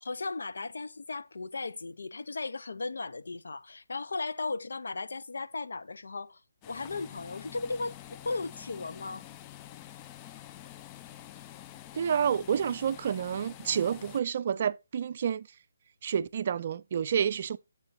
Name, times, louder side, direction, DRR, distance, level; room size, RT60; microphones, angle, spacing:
voice 1, 0.0-9.2, left 3 dB, 70° left, 0.6 m, -36 dB
sound 1, 6.6-14.2, left 13 dB, 20° left, 0.3 m, -48 dB
voice 2, 11.9-15.5 16.0-17.6, right 8 dB, 45° right, 0.4 m, -29 dB
7.5 x 3.9 x 3.9 m
figure-of-eight pair, 150°, 0 cm